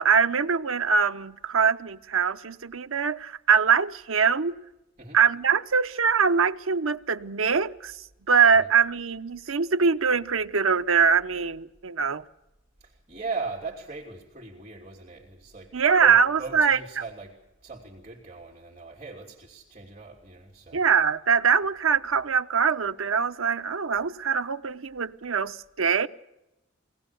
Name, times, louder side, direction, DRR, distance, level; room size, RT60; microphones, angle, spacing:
voice 1, 0.0-4.6 5.1-7.9 8.3-12.2 15.7-16.8 20.7-26.1, right 6 dB, 85° right, 10 dB, 0.9 m, -23 dB
voice 2, 12.8-20.9, right 4 dB, 35° right, -1 dB, 3.2 m, -39 dB
24.0 x 18.5 x 7.0 m, 0.92 s
head